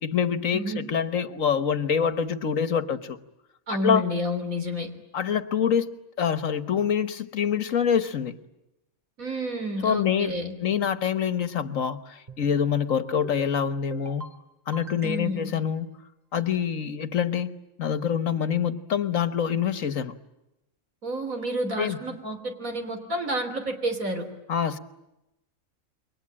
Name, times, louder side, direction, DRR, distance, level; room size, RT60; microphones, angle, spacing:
voice 1, 0.0-3.2 3.7-4.0 5.1-8.3 9.8-14.2 14.7-16.0 16.3-20.2 21.8-22.0 24.5-24.8, left 7 dB, 70° left, 13 dB, 1.6 m, -26 dB
voice 2, 0.5-0.9 3.7-4.9 9.2-10.5 15.0-15.5 21.0-24.3, equal, 75° right, 6 dB, 3.8 m, -30 dB
sound 1, 12.3-12.7 13.1-13.5 13.9-14.3 14.7-15.5, right 2 dB, 30° right, 2.8 m, -43 dB
28.5 x 23.5 x 8.8 m, 0.91 s
omnidirectional pair, 1.5 m